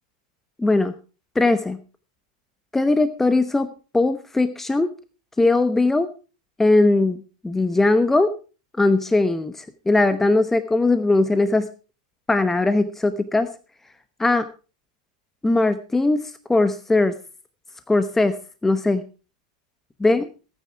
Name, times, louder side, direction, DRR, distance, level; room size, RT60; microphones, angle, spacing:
voice 1, 0.6-0.9 1.3-1.8 2.7-3.7 3.9-4.9 5.4-6.1 6.6-8.3 8.8-11.7 12.3-13.5 14.2-14.5 15.4-17.1 17.9-18.4 18.6-19.0 20.0-20.2, left 2 dB, 10° left, 11 dB, 0.9 m, -19 dB
17.5 x 9.4 x 4.6 m, 0.35 s
hypercardioid pair, 120°, 4 cm